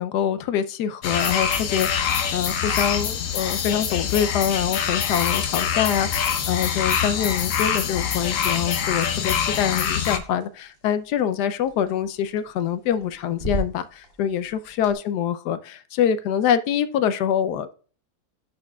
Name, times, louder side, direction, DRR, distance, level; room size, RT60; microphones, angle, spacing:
voice 1, 0.0-17.7, left 9 dB, 85° left, 13 dB, 1.2 m, -25 dB
sound 1, 1.0-10.2, left 8 dB, 60° left, 1.0 m, -24 dB
sound 2, 1.6-14.9, right 1 dB, 35° left, 2.0 m, -41 dB
11.0 x 4.3 x 2.3 m, 0.39 s
omnidirectional pair, 1.7 m